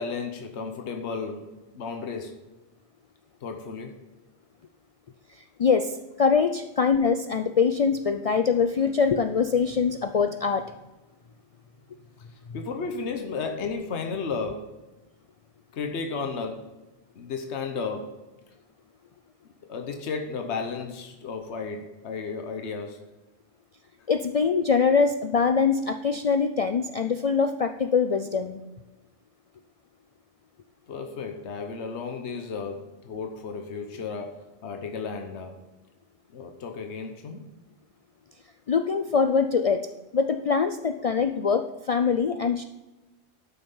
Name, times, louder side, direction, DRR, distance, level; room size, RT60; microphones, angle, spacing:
voice 1, 0.0-2.4 3.4-4.0 12.5-14.8 15.7-16.8 17.2-18.2 19.7-23.0 30.9-35.6 36.3-37.5, left 5 dB, 80° left, 5 dB, 1.2 m, -33 dB
voice 2, 5.6-10.7 24.1-28.6 38.7-39.9 40.1-42.6, left 5 dB, 55° left, 8 dB, 0.4 m, -23 dB
12.0 x 5.8 x 5.5 m, 1.1 s
omnidirectional pair, 1.1 m